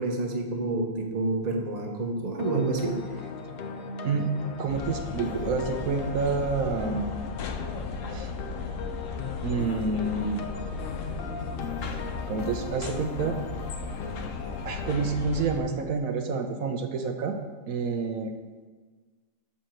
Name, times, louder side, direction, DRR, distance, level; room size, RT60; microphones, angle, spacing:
voice 1, 0.0-3.0, right 2 dB, 30° right, 1 dB, 1.1 m, -28 dB
sound 1, 2.4-15.2, left 4 dB, 55° left, 0.7 m, -38 dB
voice 2, 4.6-7.1 8.1-8.3 9.4-10.4 12.3-13.4 14.6-17.4 17.7-18.3, right 4 dB, 85° right, 4 dB, 1.3 m, -28 dB
sound 2, 4.7-15.6, left 4 dB, 70° left, 1.1 m, -36 dB
7.7 x 7.2 x 4.5 m, 1.4 s
omnidirectional pair, 1.4 m